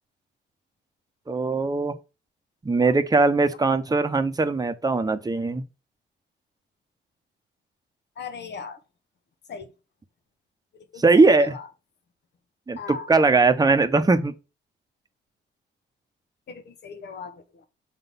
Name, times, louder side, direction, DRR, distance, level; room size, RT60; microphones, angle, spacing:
voice 1, 1.3-2.0 2.6-5.6 11.0-11.5 12.7-14.3, right 3 dB, 20° right, 1.0 m, -20 dB
voice 2, 8.2-8.8 9.5-9.7 10.7-11.7 12.8-13.1 16.5-17.7, left 5 dB, 60° left, 1.4 m, -38 dB
6.7 x 3.9 x 5.4 m
cardioid pair, 90°, 20 cm